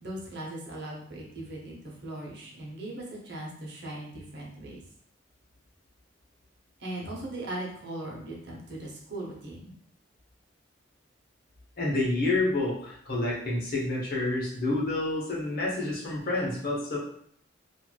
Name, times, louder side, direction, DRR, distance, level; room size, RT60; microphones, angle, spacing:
voice 1, 0.0-4.8 6.8-9.7, right 1 dB, 60° right, -3 dB, 0.8 m, -39 dB
voice 2, 11.8-17.0, left 2 dB, 50° left, -4 dB, 0.8 m, -28 dB
3.0 x 2.5 x 2.3 m, 0.64 s
head